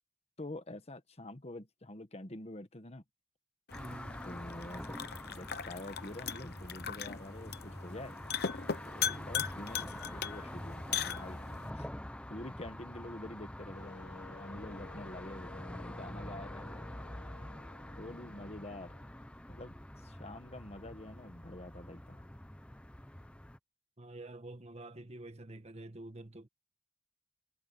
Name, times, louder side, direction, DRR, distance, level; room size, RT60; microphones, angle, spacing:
voice 1, 0.4-3.0 4.2-5.0 5.3-8.2 8.8-11.4 11.7-11.9 12.3-16.9 17.4-17.7 18.0-18.9 19.5-22.3, left 1 dB, 35° left, 1.4 m, -47 dB
sound 1, 3.7-11.7, left 8 dB, 60° left, 0.8 m, -39 dB
sound 2, 3.7-23.6, left 1 dB, 5° left, 0.8 m, -46 dB
voice 2, 3.7-4.3 9.0-9.3 24.0-26.5, right 2 dB, 35° right, 1.6 m, -48 dB
Wind instrument woodwind instrument, 13.7-19.6, left 5 dB, 80° left, 1.2 m, -56 dB
head